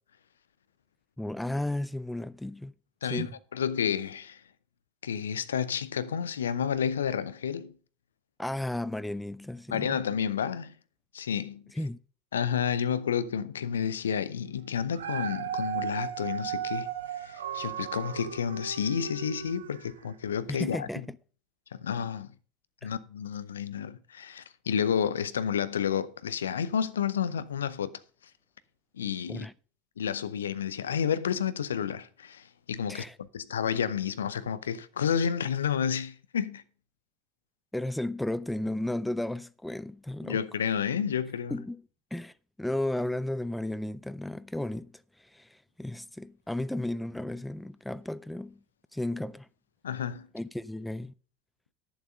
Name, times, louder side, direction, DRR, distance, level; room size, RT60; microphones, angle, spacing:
voice 1, 1.2-2.7 3.1-3.3 8.4-10.0 11.8-12.0 20.5-21.2 22.8-22.9 29.3-29.5 32.9-33.2 37.7-40.4 41.5-41.8 42.1-48.6 48.9-49.5 50.3-51.1, left 1 dB, 5° left, 0.4 m, -34 dB
voice 2, 3.0-4.4 5.0-7.7 9.7-10.7 11.1-11.6 12.3-16.9 17.1-20.9 21.7-22.3 22.8-28.0 29.0-29.5 30.0-36.6 40.2-41.6 49.8-50.3, left 8 dB, 70° left, 0.6 m, -30 dB
Dog, 14.7-20.1 20.6-20.7, right 9 dB, 70° right, 1.1 m, -36 dB
11.0 x 7.2 x 5.3 m
figure-of-eight pair, 75°, 0 cm